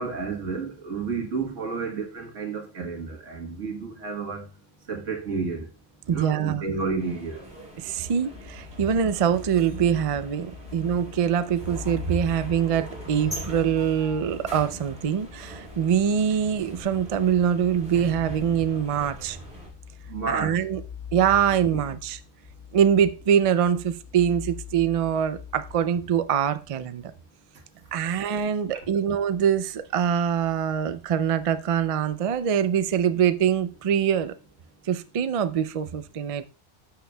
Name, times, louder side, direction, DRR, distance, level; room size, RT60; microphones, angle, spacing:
voice 1, 0.0-4.5 4.9-5.7 6.1-7.4 20.1-20.5, right 4 dB, 90° right, 1.7 m, -31 dB
voice 2, 6.1-6.6 7.8-19.4 20.3-20.8 21.1-22.2 22.7-27.0 27.9-34.3 34.8-36.4, right 8 dB, 65° right, 0.3 m, -24 dB
sound 1, 7.0-19.7, right 1 dB, 5° right, 3.3 m, -42 dB
sound 2, 8.3-25.8, left 8 dB, 40° left, 2.0 m, -42 dB
10.5 x 6.7 x 2.2 m
omnidirectional pair, 1.2 m